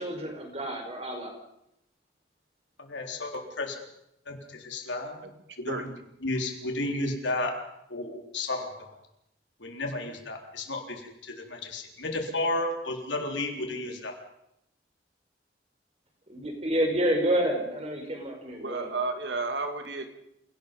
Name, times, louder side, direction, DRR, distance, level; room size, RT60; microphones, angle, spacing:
voice 1, 0.0-1.3 16.3-18.9, right 1 dB, 35° right, 3 dB, 5.0 m, -29 dB
voice 2, 2.8-3.8 4.3-5.3 5.6-5.9 6.2-7.5 7.9-8.9 9.6-14.1, left 2 dB, 85° left, 2 dB, 4.1 m, -33 dB
voice 3, 18.6-20.1, right 3 dB, 75° right, 6 dB, 2.4 m, -32 dB
28.5 x 18.0 x 5.4 m, 0.79 s
head